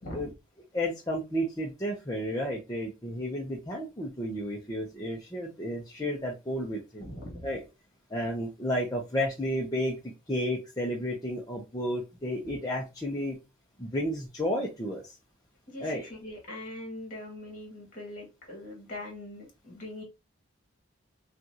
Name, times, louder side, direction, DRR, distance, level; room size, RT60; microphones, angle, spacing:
voice 1, 0.7-7.1 7.4-7.6 8.1-10.0 10.3-13.4 13.8-15.1 15.8-16.0, equal, 15° left, -2 dB, 0.7 m, -32 dB
voice 2, 7.0-7.5 12.5-12.6 15.7-20.0, left 1 dB, 40° left, 0 dB, 1.9 m, -42 dB
5.6 x 2.4 x 2.8 m, 0.25 s
head